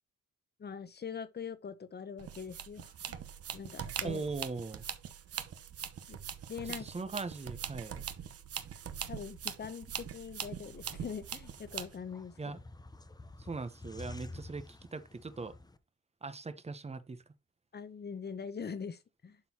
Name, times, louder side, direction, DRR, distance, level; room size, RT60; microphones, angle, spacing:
voice 1, 0.6-3.2 3.5-4.2 6.1-6.2 6.5-6.9 9.1-12.6 17.7-19.4, left 6 dB, 35° left, 1.0 m, -43 dB
sound 1, 2.2-12.0, right 9 dB, 50° right, 0.9 m, -42 dB
voice 2, 4.0-4.8 6.6-8.1 12.4-12.6 13.4-15.6 16.2-17.2, right 3 dB, 20° right, 0.9 m, -40 dB
sound 2, 10.7-15.8, left 2 dB, 15° left, 0.8 m, -50 dB
11.5 x 3.9 x 2.9 m
cardioid pair, 90°, 30 cm